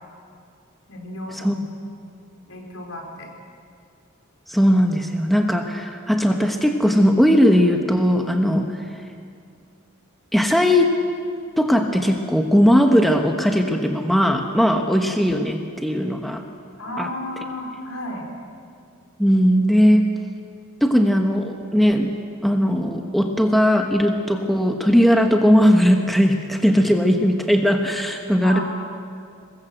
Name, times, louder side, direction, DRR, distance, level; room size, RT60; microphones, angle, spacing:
voice 1, 0.9-1.6 2.5-3.3 8.6-8.7 16.8-18.2 28.4-28.6, left 1 dB, 70° left, 0 dB, 4.8 m, -33 dB
voice 2, 4.5-8.7 10.3-10.9 11.6-16.4 17.0-17.1 19.2-20.1 20.8-22.2 22.4-28.6, equal, ahead, 3 dB, 1.1 m, -18 dB
23.5 x 20.5 x 8.0 m, 2.3 s
head